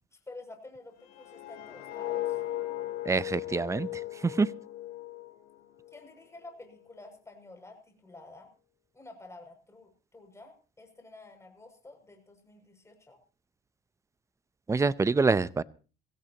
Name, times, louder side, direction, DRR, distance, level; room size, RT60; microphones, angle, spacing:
voice 1, 0.3-2.4 5.9-8.5 8.9-13.2, left 2 dB, 15° left, 4 dB, 6.5 m, -50 dB
sound 1, 1.0-6.1 6.4-6.7, left 14 dB, 85° left, 4.7 m, -37 dB
voice 2, 3.1-3.9 4.2-4.5 14.7-15.6, right 4 dB, 15° right, 18 dB, 0.7 m, -25 dB
22.5 x 16.0 x 2.9 m, 0.36 s
cardioid pair, 110°, 17 cm